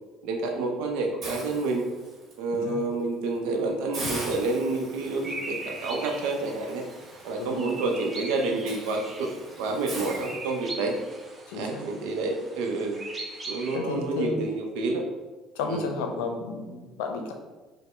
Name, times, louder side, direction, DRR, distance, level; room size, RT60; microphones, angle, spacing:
voice 1, 0.2-1.9 2.4-6.8 7.2-9.3 9.6-11.0 11.5-13.0 13.4-15.0 15.6-15.8, right 3 dB, 75° right, 3 dB, 0.6 m, -29 dB
Hiss, 1.2-2.3 2.8-3.0 3.4-3.5 3.9-11.0, right 2 dB, 55° right, 1.2 m, -41 dB
sound 1, 5.0-13.8, right 2 dB, 30° right, 0.8 m, -41 dB
voice 2, 11.5-11.9 13.7-14.4 15.5-17.3, left 4 dB, 80° left, 4 dB, 0.5 m, -32 dB
4.7 x 2.1 x 3.2 m, 1.2 s
hypercardioid pair, 70°, 0 cm